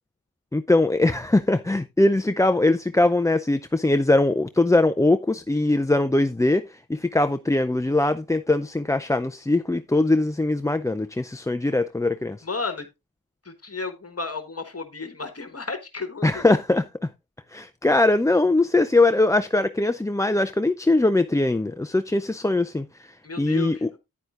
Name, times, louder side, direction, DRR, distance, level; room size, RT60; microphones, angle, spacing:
voice 1, 0.5-12.4 16.2-16.8 17.5-23.9, left 2 dB, 10° left, 0.4 m, -21 dB
voice 2, 12.4-12.9 13.4-16.5 23.2-23.9, left 3 dB, 45° left, 1.4 m, -33 dB
9.8 x 9.5 x 2.4 m
cardioid pair, 50°, 35 cm